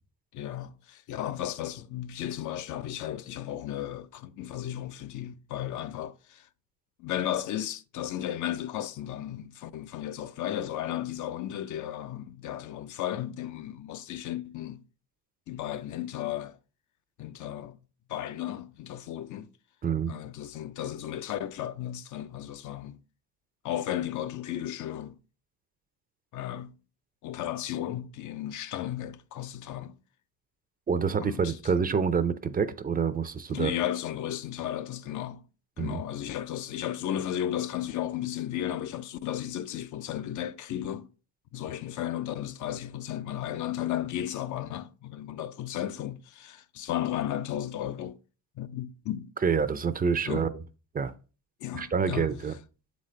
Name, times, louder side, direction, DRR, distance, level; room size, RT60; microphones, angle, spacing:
voice 1, 0.3-6.5 7.0-14.8 15.5-16.6 17.2-17.8 18.1-19.5 20.1-23.0 23.6-25.2 26.3-26.7 27.2-29.9 31.2-31.8 33.5-35.4 35.8-41.1 41.5-48.2 48.6-49.3 50.3-50.5 51.6-52.3, left 11 dB, 60° left, 0.5 m, -34 dB
voice 2, 19.8-20.1 30.9-33.8 35.8-36.0 49.4-50.5 50.9-51.1 51.7-52.6, right 6 dB, 25° right, 0.4 m, -27 dB
7.3 x 4.1 x 3.2 m
cardioid pair, 100°, 34 cm